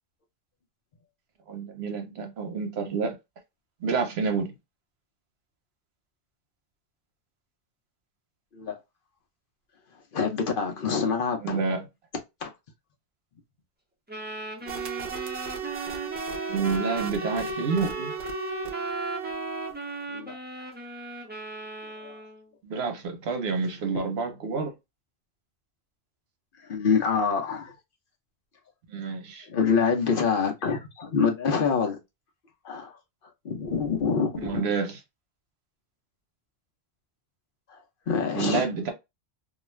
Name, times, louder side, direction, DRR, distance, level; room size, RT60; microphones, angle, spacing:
voice 1, 1.5-3.2 3.8-4.5 11.4-11.9 16.5-18.1 22.6-24.7 28.9-29.5 34.4-35.0 38.3-38.9, right 5 dB, 75° right, 0.9 m, -29 dB
voice 2, 10.1-11.6 12.4-12.5 14.7-14.8 20.1-20.3 22.0-22.2 26.7-27.7 29.5-32.0 32.6-32.9 33.4-34.7 37.7-37.8 38.1-38.7, left 5 dB, 60° left, 0.8 m, -26 dB
sound 1, 14.1-22.5, right 1 dB, 10° right, 0.6 m, -36 dB
sound 2, 14.7-20.0, right 8 dB, 50° right, 0.7 m, -36 dB
2.4 x 2.3 x 3.0 m
omnidirectional pair, 1.1 m